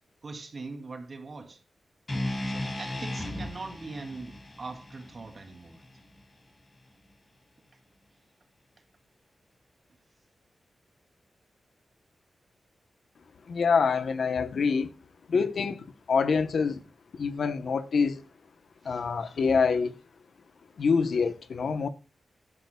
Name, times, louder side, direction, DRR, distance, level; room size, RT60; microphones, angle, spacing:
voice 1, 0.2-1.6 2.4-5.9 18.8-19.0, right 3 dB, 55° right, 2.7 m, -42 dB
sound 1, 2.1-6.3, left 1 dB, 35° left, 4.5 m, -36 dB
voice 2, 13.5-14.9 15.3-16.8 17.1-18.2 18.8-19.9 20.8-21.9, left 5 dB, 75° left, 1.0 m, -26 dB
15.0 x 11.0 x 2.3 m
cardioid pair, 65°, 0 cm